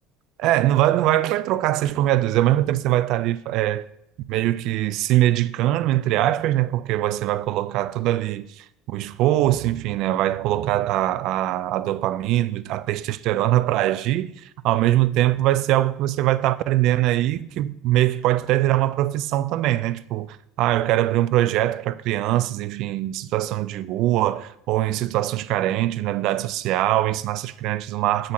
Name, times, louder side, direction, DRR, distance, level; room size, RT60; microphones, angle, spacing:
voice 1, 0.4-3.9 4.3-28.3, right 14 dB, 60° right, 0.4 m, -22 dB
7.2 x 6.5 x 4.1 m
cardioid pair, 140°, 0 cm